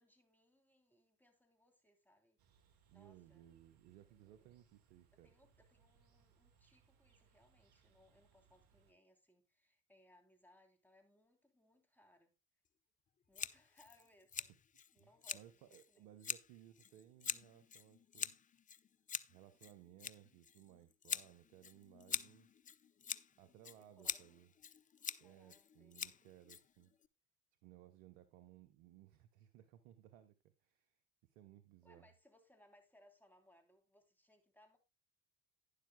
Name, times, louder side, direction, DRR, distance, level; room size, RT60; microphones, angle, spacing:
voice 1, 0.0-2.4 2.9-3.5 4.1-4.6 5.2-12.4 13.3-14.5 14.9-16.1 23.8-24.4 25.2-26.2 31.8-34.8, left 1 dB, 5° left, 3.1 m, -70 dB
sound 1, 2.4-8.9, right 6 dB, 60° right, 1.8 m, -73 dB
voice 2, 2.9-5.3 15.0-18.4 19.3-22.5 23.4-24.5 25.2-26.9 27.6-32.1, right 12 dB, 75° right, 1.0 m, -62 dB
Scissors, 13.3-27.1, left 8 dB, 20° left, 0.4 m, -46 dB
11.5 x 10.5 x 2.2 m
hypercardioid pair, 65°, 42 cm